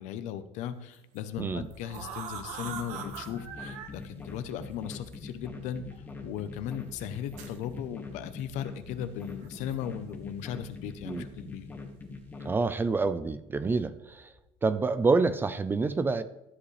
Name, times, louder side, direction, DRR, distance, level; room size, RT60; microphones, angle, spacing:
voice 1, 0.0-5.8 6.2-11.7, left 9 dB, 70° left, 11 dB, 0.8 m, -37 dB
sound 1, 0.9-1.2 1.7-3.9 5.1-5.2 5.9-6.0 7.0-7.6 9.4-10.1 10.4-10.7 11.3-11.6 11.9-12.3, right 7 dB, 80° right, 1.5 m, -42 dB
sound 2, 1.3-14.5, left 5 dB, 40° left, 1.4 m, -54 dB
sound 3, 2.6-12.6, left 3 dB, 15° left, 1.5 m, -44 dB
voice 2, 12.4-14.3 14.6-16.2, right 4 dB, 15° right, 13 dB, 0.4 m, -27 dB
13.0 x 8.2 x 3.3 m, 0.90 s
cardioid pair, 150°, 13 cm